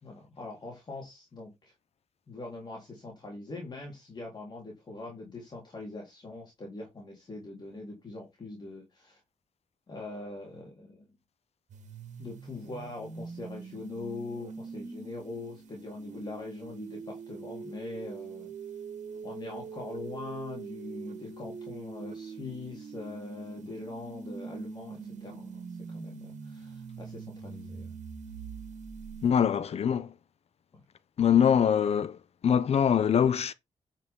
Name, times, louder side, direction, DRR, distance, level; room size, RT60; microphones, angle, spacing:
voice 1, 0.0-1.7 2.3-9.2 9.9-11.1 12.2-18.5 19.2-28.0 30.7-30.8, left 2 dB, 35° left, 3.8 m, -42 dB
sound 1, 11.7-29.3, right 5 dB, 70° right, 2.0 m, -43 dB
voice 2, 29.2-30.1 31.2-32.2 32.4-33.5, left 8 dB, 55° left, 0.7 m, -23 dB
9.5 x 5.8 x 3.8 m
wide cardioid pair, 155°, 13 cm